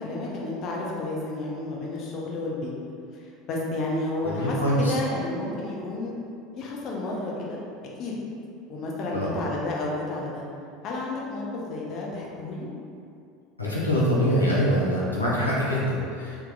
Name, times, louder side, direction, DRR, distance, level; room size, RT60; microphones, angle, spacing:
voice 1, 0.0-2.7 3.5-6.1 6.6-7.6 8.0-8.2 8.7-10.4 10.8-12.7, left 2 dB, 45° left, -3 dB, 0.6 m, -31 dB
voice 2, 4.2-4.9 9.1-9.3 13.6-16.4, equal, 90° left, -6 dB, 0.5 m, -24 dB
3.6 x 2.9 x 2.4 m, 2.5 s
figure-of-eight pair, 75°, 0 cm